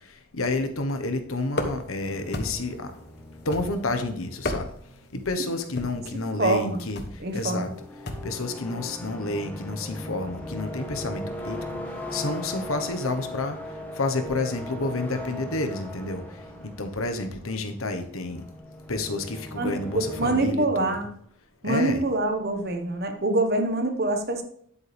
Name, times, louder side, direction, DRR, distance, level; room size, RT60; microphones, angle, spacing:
voice 1, 0.3-2.9 3.4-4.7 5.1-7.0 7.3-7.7 8.2-11.6 12.1-13.6 13.9-16.2 16.6-18.4 18.9-21.0 21.6-22.0, left 2 dB, 85° left, 7 dB, 1.2 m, -29 dB
sound 1, 1.5-2.0 2.3-2.8 3.5-4.0 4.3-5.0 5.7-6.1 7.0-7.2 8.1-8.4, left 2 dB, 50° left, 1.1 m, -32 dB
sound 2, 2.0-20.5, left 1 dB, 10° left, 1.3 m, -39 dB
voice 2, 6.4-6.8 7.2-7.7 19.6-19.7 20.2-21.1 21.6-24.4, right 2 dB, 50° right, 6 dB, 1.4 m, -25 dB
9.8 x 8.4 x 3.5 m, 0.65 s
head